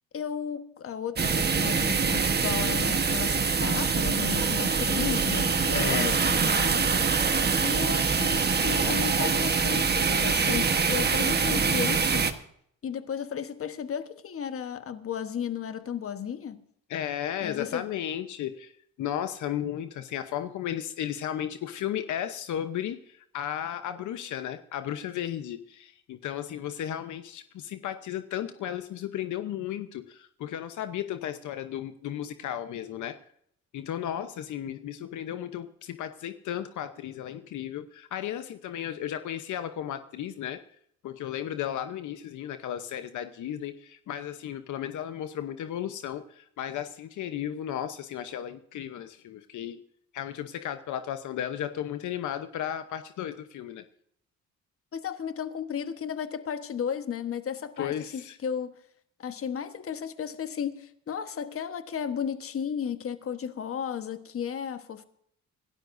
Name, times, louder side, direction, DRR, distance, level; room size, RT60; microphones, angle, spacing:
voice 1, 0.1-6.9 7.6-12.3 12.8-16.6 17.4-17.8 54.9-58.7 59.2-65.0, left 8 dB, 50° left, 1.3 m, -34 dB
sound 1, 1.2-12.3, right 5 dB, 35° right, 1.3 m, -24 dB
voice 2, 5.7-6.2 16.9-18.7 19.0-33.2 33.7-40.6 41.0-49.8 50.1-53.8 57.8-58.4, left 10 dB, 75° left, 1.0 m, -34 dB
26.5 x 12.5 x 2.7 m
cardioid pair, 90°, 30 cm